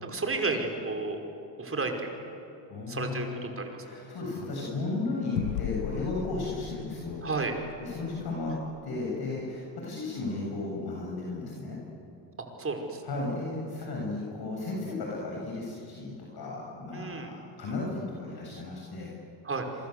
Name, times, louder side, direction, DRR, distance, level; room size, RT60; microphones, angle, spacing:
voice 1, 0.0-1.2 1.6-2.0 2.9-3.9 7.2-7.6 12.6-13.0 16.9-17.3 19.4-19.7, right 3 dB, 25° right, 3 dB, 5.5 m, -32 dB
voice 2, 2.7-3.5 3.8-7.2 7.8-8.5 8.8-11.8 13.0-19.1, left 3 dB, 50° left, -2 dB, 7.9 m, -34 dB
sound 1, 5.3-10.2, left 13 dB, 85° left, 1.0 m, -39 dB
27.5 x 25.0 x 8.2 m, 2.8 s
supercardioid pair, 80°, 49 cm